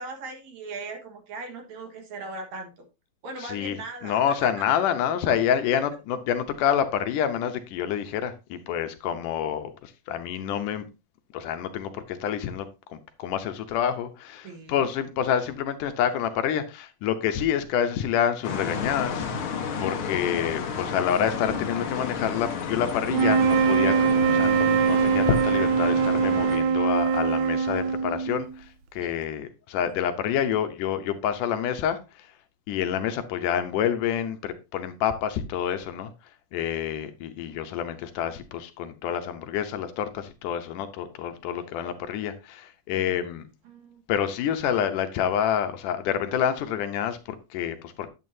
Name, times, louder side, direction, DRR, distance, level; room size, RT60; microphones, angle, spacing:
voice 1, 0.0-2.7 3.2-4.5 14.4-14.8 29.0-29.1 42.9-43.2 43.6-44.0, right 3 dB, 60° right, 2.7 m, -39 dB
voice 2, 3.4-10.9 11.3-28.7 28.9-32.3 32.7-36.1 36.5-43.4 44.1-48.1, left 9 dB, 75° left, 2.3 m, -28 dB
sound 1, 18.4-26.6, left 6 dB, 60° left, 1.4 m, -32 dB
sound 2, 23.1-28.5, right 6 dB, 80° right, 1.7 m, -22 dB
9.3 x 8.5 x 2.7 m
omnidirectional pair, 3.8 m